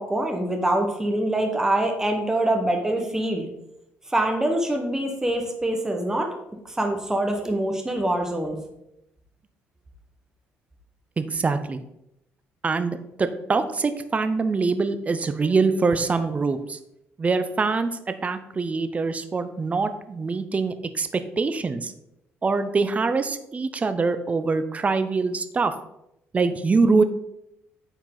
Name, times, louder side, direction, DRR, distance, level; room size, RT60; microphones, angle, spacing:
voice 1, 0.0-3.5 4.1-6.3 6.7-8.6, right 1 dB, 10° right, 3 dB, 1.3 m, -24 dB
voice 2, 11.2-11.8 12.6-16.8 17.2-21.9 22.4-25.7 26.3-27.0, right 4 dB, 30° right, 10 dB, 0.7 m, -24 dB
8.9 x 4.6 x 4.0 m, 0.83 s
cardioid pair, 90°, 5 cm